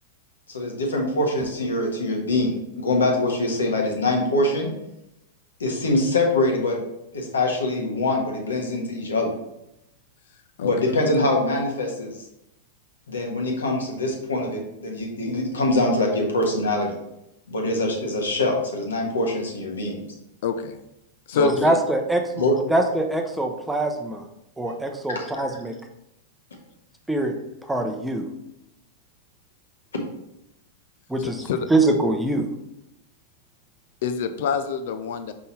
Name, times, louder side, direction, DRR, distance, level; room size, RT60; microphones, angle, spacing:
voice 1, 0.5-4.7 5.6-6.8 7.1-9.3 10.6-12.1 13.1-17.0 17.5-20.0 21.3-21.5 22.4-22.5 25.1-25.4, left 2 dB, 70° left, 1 dB, 1.6 m, -24 dB
voice 2, 20.4-20.8 21.3-21.8 31.2-31.7 34.0-35.3, left 6 dB, 55° left, 9 dB, 0.6 m, -26 dB
voice 3, 21.4-22.3 22.7-24.2 24.6-25.7 27.1-27.3 27.6-28.3 31.1-32.5, right 2 dB, 5° right, 4 dB, 0.8 m, -23 dB
5.5 x 5.2 x 4.1 m, 0.87 s
figure-of-eight pair, 95°, 0 cm